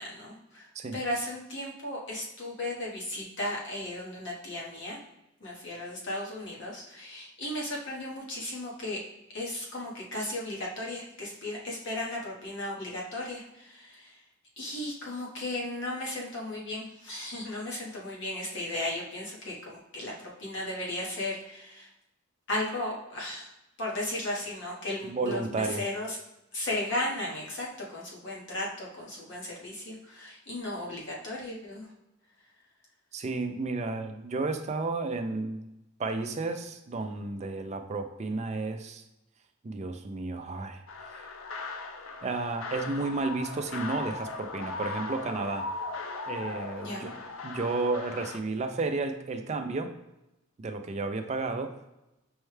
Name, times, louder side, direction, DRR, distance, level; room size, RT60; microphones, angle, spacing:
voice 1, 0.0-5.0 5.4-9.0 9.3-14.2 14.6-21.9 22.5-23.5 23.8-26.2 26.5-31.9 46.8-47.1, left 1 dB, 60° left, -4 dB, 1.2 m, -35 dB
voice 2, 25.1-25.8 33.1-35.7 36.0-39.0 39.6-40.8 41.1-41.3 42.2-45.7 46.3-47.2 47.4-49.9 50.6-51.8, right 3 dB, 35° right, 7 dB, 0.4 m, -32 dB
sound 1, 40.9-48.4, left 3 dB, 85° left, 0.5 m, -38 dB
5.3 x 2.2 x 3.2 m, 0.92 s
head